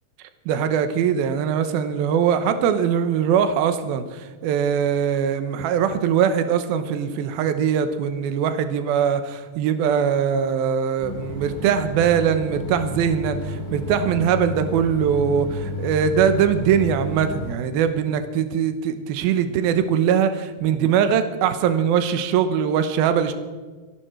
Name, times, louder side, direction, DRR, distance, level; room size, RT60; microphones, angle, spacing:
voice 1, 0.5-23.3, right 8 dB, 80° right, 9 dB, 2.9 m, -21 dB
sound 1, 11.0-17.6, left 2 dB, 30° left, 2.0 m, -32 dB
26.0 x 11.5 x 4.5 m, 1.3 s
omnidirectional pair, 4.3 m